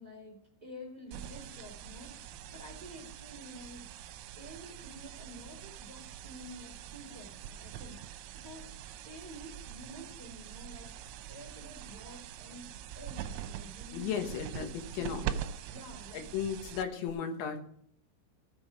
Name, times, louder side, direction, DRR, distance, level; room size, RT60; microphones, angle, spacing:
voice 1, 0.0-4.1 4.3-8.6 9.0-12.7 12.9-14.3 14.6-15.1 15.6-16.3 17.2-17.3, equal, 15° right, 0 dB, 1.7 m, -50 dB
sound 1, 1.1-17.1, right 10 dB, 85° right, 3.4 m, -43 dB
voice 2, 13.9-15.3 16.1-17.6, left 7 dB, 70° left, 5 dB, 3.5 m, -35 dB
15.0 x 7.1 x 4.9 m, 0.65 s
omnidirectional pair, 5.7 m